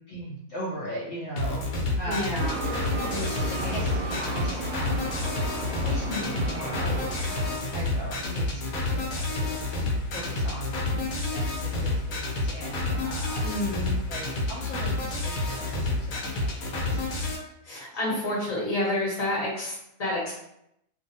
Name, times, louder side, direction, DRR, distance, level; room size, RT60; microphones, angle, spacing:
voice 1, 0.1-2.5 3.0-5.1 5.3-9.6 10.1-13.5 14.1-17.4 17.8-17.9, right 1 dB, 65° left, -7 dB, 0.8 m, -38 dB
sound 1, 1.4-17.4, left 2 dB, 90° left, 1.1 m, -29 dB
voice 2, 2.1-2.5 13.4-14.0 17.6-20.3, left 1 dB, 30° left, -5 dB, 0.9 m, -29 dB
sound 2, 2.4-7.9, right 3 dB, 70° right, 0.9 m, -35 dB
2.6 x 2.2 x 2.6 m, 0.77 s
omnidirectional pair, 1.5 m